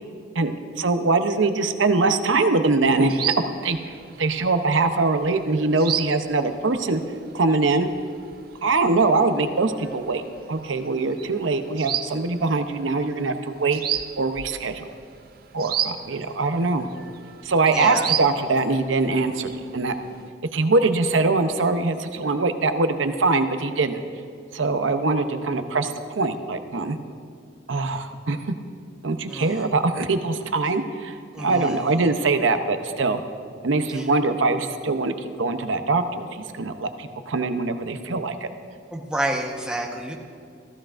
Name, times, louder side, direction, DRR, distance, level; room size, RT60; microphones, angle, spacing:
voice 1, 0.4-3.8 4.2-7.0 7.3-7.9 8.6-10.2 10.5-13.8 14.2-14.9 15.5-16.9 17.4-20.0 20.5-24.0 24.5-27.0 27.7-28.4 29.0-33.2 33.6-38.5, right 3 dB, 85° right, 8 dB, 0.7 m, -23 dB
sound 1, 2.8-20.3, right 10 dB, 50° right, 0.4 m, -35 dB
voice 2, 17.7-18.1 29.3-29.7 31.3-32.0 33.9-34.0 38.9-40.1, right 1 dB, 5° right, -2 dB, 1.1 m, -29 dB
15.5 x 14.5 x 2.5 m, 2.3 s
head